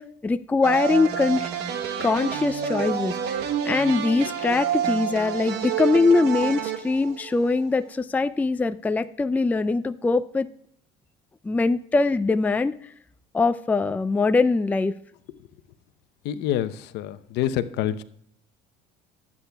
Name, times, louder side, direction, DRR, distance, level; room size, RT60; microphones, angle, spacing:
voice 1, 0.0-1.5 2.0-10.5 11.4-12.7 13.3-15.0, left 3 dB, 10° left, 12 dB, 0.4 m, -22 dB
sound 1, 0.6-7.6, right 8 dB, 65° right, 1.1 m, -28 dB
voice 2, 16.2-18.0, left 11 dB, 70° left, 12 dB, 0.8 m, -27 dB
19.5 x 8.5 x 2.3 m, 0.68 s
supercardioid pair, 105°, 18 cm